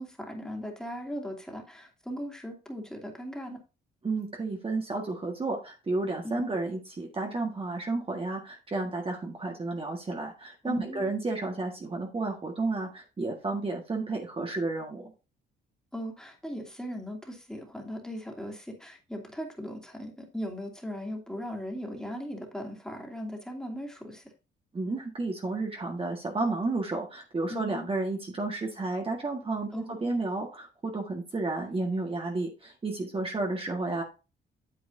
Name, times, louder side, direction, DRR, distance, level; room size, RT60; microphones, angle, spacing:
voice 1, 0.0-3.6 6.2-6.5 10.6-11.0 15.9-24.2 27.5-27.9 29.7-30.1, equal, 5° left, 1 dB, 2.6 m, -38 dB
voice 2, 4.0-15.1 24.7-34.0, right 3 dB, 30° right, 1 dB, 1.7 m, -32 dB
9.0 x 7.7 x 2.7 m, 0.30 s
cardioid pair, 90°, 20 cm